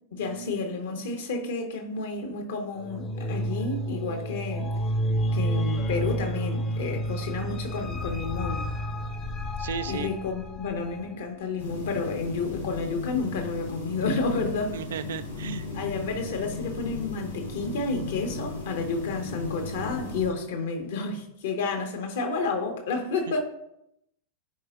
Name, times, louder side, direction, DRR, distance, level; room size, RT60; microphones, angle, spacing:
voice 1, 0.1-4.7 5.3-8.7 9.9-14.7 15.7-23.4, left 3 dB, 60° left, 1.4 m, -30 dB
sound 1, 2.8-11.1, equal, 30° left, 0.9 m, -30 dB
voice 2, 9.6-10.1 14.7-15.7, right 8 dB, 60° right, 0.4 m, -35 dB
sound 2, 11.6-20.3, left 3 dB, 75° left, 2.3 m, -36 dB
14.0 x 5.1 x 2.5 m
figure-of-eight pair, 90°, 0 cm